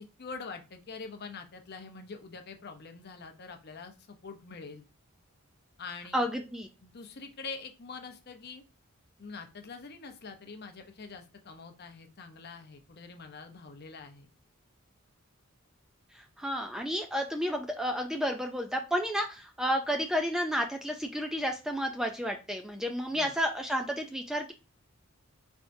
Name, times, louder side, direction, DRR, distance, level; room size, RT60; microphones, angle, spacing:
voice 1, 0.0-4.8 5.8-6.3 6.8-8.6 9.2-14.3 23.1-23.3, left 4 dB, 50° left, 6 dB, 0.7 m, -45 dB
voice 2, 6.1-6.7 16.1-24.5, equal, 5° right, 4 dB, 0.3 m, -31 dB
4.4 x 3.5 x 2.6 m, 0.29 s
head